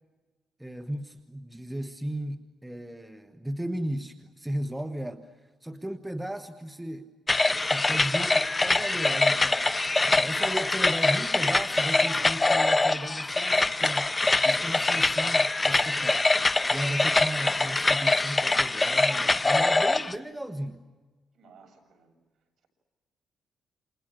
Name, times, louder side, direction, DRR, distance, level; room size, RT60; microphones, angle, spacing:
voice 1, 0.6-7.1 7.7-9.8 10.1-14.1 14.4-20.8, right 1 dB, 5° right, 7 dB, 1.2 m, -35 dB
sound 1, 7.3-20.1, left 2 dB, 20° left, 0.8 m, -24 dB
voice 2, 21.3-22.1, right 3 dB, 55° right, 3 dB, 7.9 m, -55 dB
29.0 x 27.5 x 6.5 m, 1.3 s
cardioid pair, 115°, 0 cm